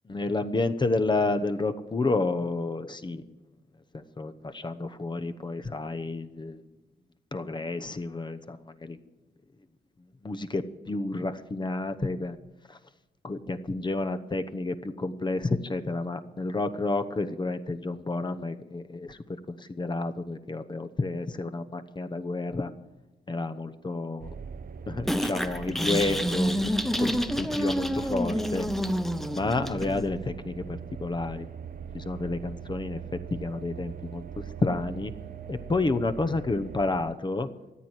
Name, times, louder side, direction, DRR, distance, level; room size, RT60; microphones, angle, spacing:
voice 1, 0.1-3.2 3.9-6.6 7.3-8.6 8.8-9.0 10.2-12.4 12.7-12.8 13.2-19.2 19.5-22.7 23.3-24.3 24.9-26.5 27.0-28.7 29.3-31.5 31.9-33.0 33.4-34.2 34.6-35.1 35.5-37.5, left 3 dB, 25° left, 10 dB, 0.9 m, -30 dB
sound 1, 24.2-37.1, right 7 dB, 55° right, 0.7 m, -41 dB
sound 2, 25.1-30.1, equal, ahead, 0.8 m, -28 dB
14.0 x 9.1 x 8.0 m, 1.1 s
wide cardioid pair, 115°, 18 cm